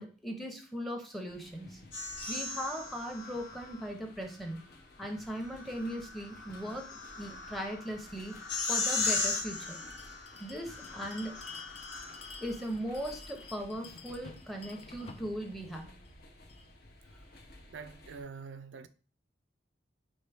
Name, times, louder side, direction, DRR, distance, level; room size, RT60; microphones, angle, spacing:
voice 1, 0.0-1.8 2.3-4.6 5.0-8.4 8.7-9.8 10.4-11.4 12.4-15.9, equal, ahead, 0.7 m, -39 dB
sound 1, 1.3-18.2, left 1 dB, 60° left, 0.7 m, -55 dB
sound 2, 1.9-3.9 5.3-12.5, left 4 dB, 80° left, 1.1 m, -37 dB
Bell, 9.5-16.7, left 5 dB, 35° left, 0.4 m, -51 dB
voice 2, 17.7-18.9, right 5 dB, 80° right, 0.4 m, -45 dB
4.4 x 3.3 x 3.4 m
head